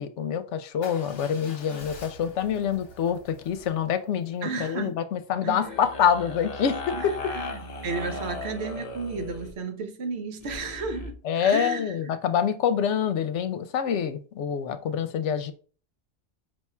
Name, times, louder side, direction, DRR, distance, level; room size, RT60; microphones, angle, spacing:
voice 1, 0.0-7.3 11.2-15.5, left 8 dB, 80° left, 0.9 m, -26 dB
Motorcycle / Engine starting / Idling, 0.8-4.9, left 3 dB, 60° left, 1.1 m, -47 dB
voice 2, 4.4-5.0 5.4-5.7 6.9-11.9, right 4 dB, 70° right, 0.9 m, -33 dB
sound 1, 5.6-9.5 10.4-11.1, left 2 dB, 40° left, 0.7 m, -37 dB
4.8 x 2.4 x 4.2 m
omnidirectional pair, 1.2 m